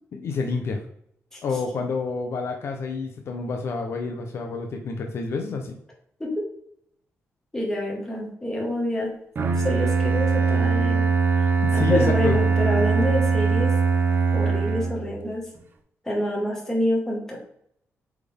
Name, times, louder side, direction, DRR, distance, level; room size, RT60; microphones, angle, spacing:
voice 1, 0.1-0.8 1.4-5.8 11.6-12.4, left 4 dB, 55° left, 3 dB, 0.8 m, -28 dB
voice 2, 7.5-9.1 9.6-11.0 11.7-13.7 14.3-15.4 16.0-17.4, left 1 dB, 10° left, -2 dB, 1.8 m, -27 dB
Bowed string instrument, 9.3-15.2, right 5 dB, 40° right, 0.8 m, -21 dB
8.1 x 3.6 x 3.6 m, 0.70 s
wide cardioid pair, 165°, 5 cm